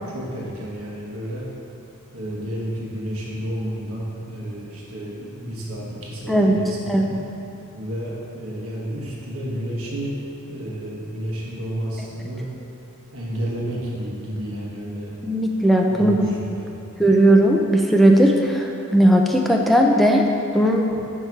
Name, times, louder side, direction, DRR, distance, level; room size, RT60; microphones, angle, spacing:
voice 1, 0.1-1.5 2.1-7.1 7.7-10.2 10.5-12.5 13.1-15.1 15.9-16.7, equal, 75° right, -4 dB, 1.2 m, -31 dB
voice 2, 6.3-6.6 6.9-7.1 15.2-16.2 17.0-20.2 20.5-20.9, right 1 dB, ahead, 0 dB, 0.3 m, -17 dB
5.6 x 4.5 x 4.5 m, 2.9 s
head